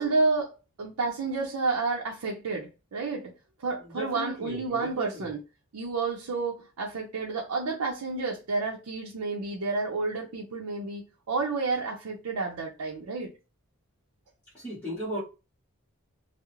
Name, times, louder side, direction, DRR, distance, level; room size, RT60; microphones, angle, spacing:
voice 1, 0.0-3.3 3.6-5.4 5.7-13.3, right 3 dB, 85° right, 0.5 m, -30 dB
voice 2, 3.8-5.3 14.5-15.2, equal, 10° left, 0.8 m, -36 dB
2.3 x 2.0 x 2.9 m
head